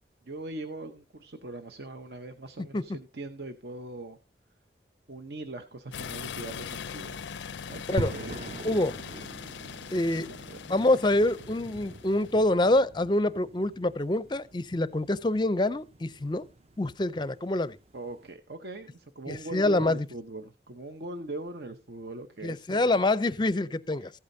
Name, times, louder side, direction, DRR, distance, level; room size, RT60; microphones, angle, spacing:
voice 1, 0.3-4.2 5.1-7.2 7.7-8.7 10.1-10.8 17.9-23.0 24.0-24.1, right 2 dB, 65° right, 0.8 m, -41 dB
sound 1, 5.9-12.5, left 7 dB, 85° left, 0.5 m, -41 dB
sound 2, 8.0-18.2, right 2 dB, 35° right, 0.6 m, -43 dB
voice 2, 8.6-9.0 9.9-10.3 10.7-16.4 16.8-17.8 19.3-20.0 22.4-24.1, left 2 dB, 25° left, 0.5 m, -26 dB
15.0 x 8.6 x 2.7 m
head